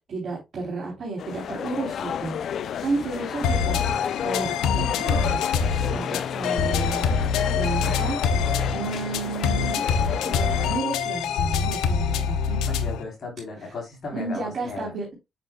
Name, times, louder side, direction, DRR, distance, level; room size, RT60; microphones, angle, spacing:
voice 1, 0.1-2.4 2.8-3.8 4.2-5.4 5.9-7.1 7.6-8.2 8.7-9.8 10.3-12.6 13.6-13.7 14.1-15.1, right 3 dB, 50° right, 3.4 m, -32 dB
sound 1, 1.2-10.8, left 8 dB, 65° left, 0.5 m, -32 dB
sound 2, 3.4-13.0, left 6 dB, 90° left, 0.8 m, -25 dB
voice 2, 12.6-14.9, left 3 dB, 50° left, 3.6 m, -36 dB
7.3 x 6.6 x 2.2 m
cardioid pair, 90°, 0 cm